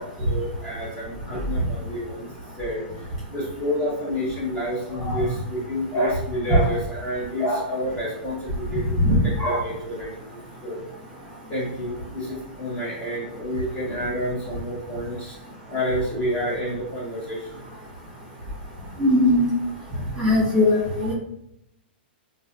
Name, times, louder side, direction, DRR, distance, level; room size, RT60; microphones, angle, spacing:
voice 1, 0.0-2.2 2.6-2.8 3.3-8.9 9.2-10.2 10.6-10.8 11.5-15.3 15.7-17.4, equal, 20° left, -7 dB, 1.3 m, -28 dB
voice 2, 19.0-19.5 20.2-21.1, left 1 dB, 10° right, -8 dB, 1.3 m, -19 dB
3.1 x 2.5 x 2.7 m, 0.78 s
hypercardioid pair, 140°, 6 cm